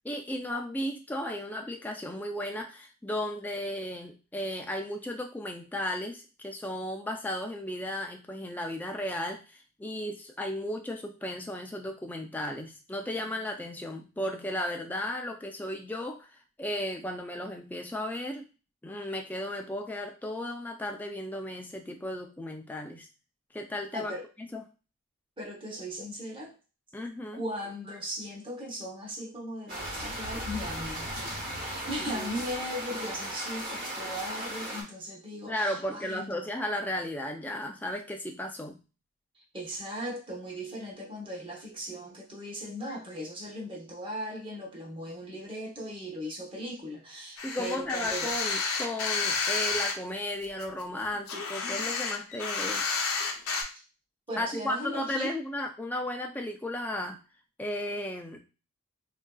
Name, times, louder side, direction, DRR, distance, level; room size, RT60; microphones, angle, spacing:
voice 1, 0.0-18.5 18.8-23.1 23.5-24.1 24.5-24.6 26.9-27.4 32.1-32.3 35.5-38.8 47.4-52.8 54.4-57.2 57.6-58.4, left 1 dB, 10° left, 3 dB, 0.3 m, -35 dB
voice 2, 23.9-24.3 25.4-26.5 27.3-31.1 31.5-36.5 39.3-48.3 54.3-55.3, equal, 20° right, -3 dB, 0.8 m, -38 dB
sound 1, 29.7-34.8, equal, 45° right, 1.1 m, -36 dB
sound 2, 47.4-49.9 50.4-53.6, left 4 dB, 65° left, 0.6 m, -30 dB
3.6 x 2.5 x 2.3 m, 0.33 s
head